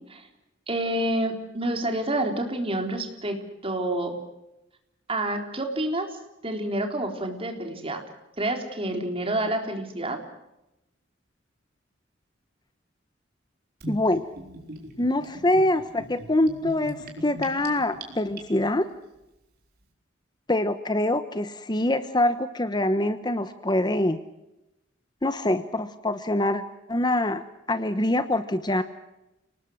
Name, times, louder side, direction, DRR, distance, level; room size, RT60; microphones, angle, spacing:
voice 1, 0.7-3.4 3.6-4.1 5.1-8.0 8.4-10.2, right 1 dB, 30° right, 4 dB, 3.9 m, -28 dB
Gurgling / Bathtub (filling or washing), 13.8-18.9, right 2 dB, 55° right, 4.4 m, -41 dB
voice 2, 13.9-14.2 15.0-18.9 20.5-24.2 25.2-26.6 26.9-27.4 27.7-28.8, left 1 dB, 20° left, 11 dB, 1.0 m, -24 dB
30.0 x 19.5 x 6.5 m, 0.92 s
head